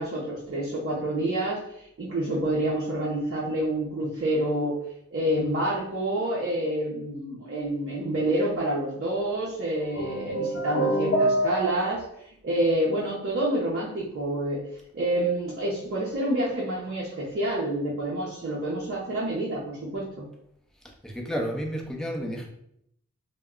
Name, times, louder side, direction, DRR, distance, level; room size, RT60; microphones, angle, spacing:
voice 1, 0.0-4.8 5.1-12.0 12.4-14.6 14.9-20.2, right 1 dB, 45° right, -7 dB, 0.7 m, -28 dB
sound 1, 10.0-12.0, right 1 dB, 45° left, 0.7 m, -26 dB
voice 2, 21.0-22.5, equal, ahead, 0 dB, 0.6 m, -31 dB
2.2 x 2.1 x 3.6 m, 0.74 s
cardioid pair, 45°, 30 cm